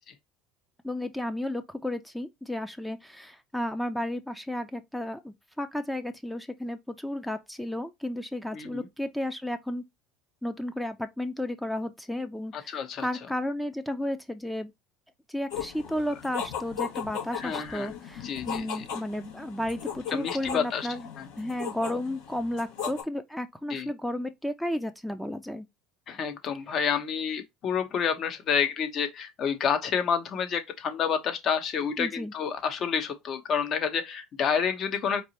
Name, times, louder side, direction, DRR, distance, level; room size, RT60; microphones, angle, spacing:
voice 1, 0.8-9.8 10.4-14.7 15.3-21.0 21.4-25.7 32.0-32.3, left 1 dB, 5° left, 0.6 m, -33 dB
voice 2, 8.5-8.9 12.5-13.1 17.3-17.9 18.2-18.8 20.1-20.9 21.2-21.3 23.7-23.9 26.1-35.2, left 7 dB, 45° left, 1.0 m, -29 dB
sound 1, 15.5-23.0, left 7 dB, 80° left, 2.1 m, -37 dB
4.6 x 2.9 x 2.9 m
supercardioid pair, 95°, 0 cm